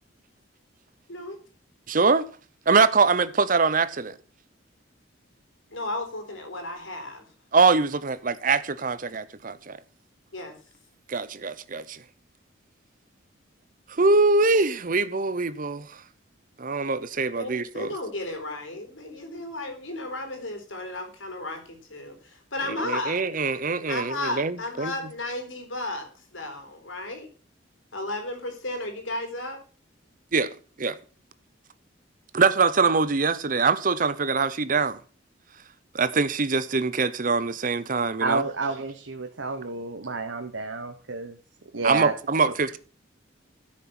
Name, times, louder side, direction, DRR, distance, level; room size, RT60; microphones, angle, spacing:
voice 1, 1.9-2.3 2.7-4.2 7.5-9.8 11.1-12.0 13.9-16.0 16.6-17.9 22.8-24.9 30.3-31.0 32.3-35.0 35.9-38.4 41.8-42.8, right 4 dB, 45° right, 0.7 m, -23 dB
voice 2, 5.7-7.3 10.3-10.5 17.4-22.2 22.5-23.2 23.9-27.3 27.9-29.6, left 2 dB, 90° left, 4.0 m, -34 dB
voice 3, 38.2-41.4 41.7-42.1, right 4 dB, 80° right, 1.1 m, -30 dB
13.0 x 6.4 x 5.9 m
head